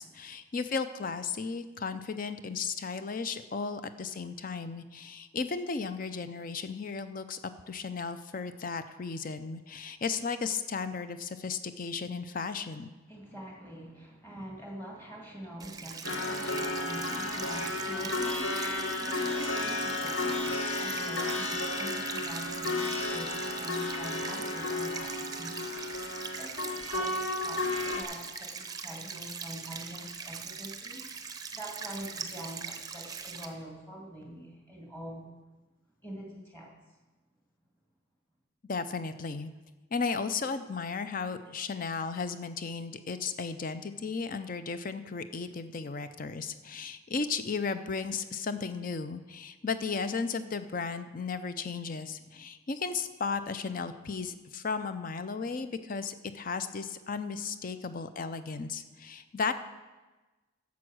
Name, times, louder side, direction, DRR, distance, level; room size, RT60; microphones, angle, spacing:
voice 1, 0.0-12.9 38.7-39.5 39.9-59.5, left 5 dB, 40° left, 11 dB, 0.5 m, -35 dB
voice 2, 13.1-35.4 36.0-36.7, right 1 dB, 10° left, -2 dB, 2.0 m, -45 dB
sound 1, 15.6-33.5, right 6 dB, 20° right, 0.7 m, -41 dB
sound 2, 16.0-28.0, left 2 dB, 75° left, 1.2 m, -33 dB
11.0 x 7.1 x 6.2 m, 1.2 s
head